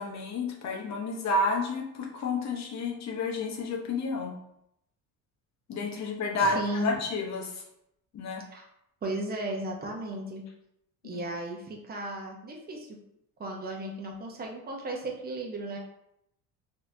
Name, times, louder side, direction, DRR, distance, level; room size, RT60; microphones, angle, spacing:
voice 1, 0.0-4.3 5.7-7.6 8.1-8.4 11.0-11.2, left 3 dB, 45° left, 1 dB, 0.9 m, -30 dB
voice 2, 6.4-6.9 8.5-8.6 9.0-10.4 11.0-12.9 13.4-15.8, right 1 dB, 25° right, 0 dB, 0.8 m, -35 dB
4.0 x 2.9 x 2.7 m, 0.78 s
cardioid pair, 120°, 39 cm